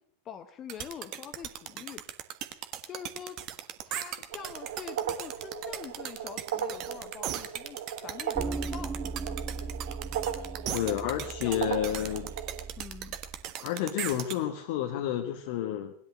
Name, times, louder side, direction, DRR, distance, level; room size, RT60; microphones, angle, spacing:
voice 1, 0.2-2.0 2.9-3.4 3.9-7.8 8.0-8.9 10.7-11.1 11.4-11.9 12.8-13.2, left 8 dB, 30° left, 9 dB, 1.0 m, -44 dB
sound 1, 0.7-14.4, right 11 dB, 40° right, 1.4 m, -37 dB
sound 2, 4.3-12.7, right 9 dB, 55° right, 2.1 m, -37 dB
sound 3, 8.3-13.4, right 4 dB, 15° right, 0.9 m, -38 dB
voice 2, 10.7-12.3 13.6-15.9, left 11 dB, 50° left, 4 dB, 1.3 m, -30 dB
19.5 x 11.0 x 6.4 m, 0.65 s
figure-of-eight pair, 90°, 0 cm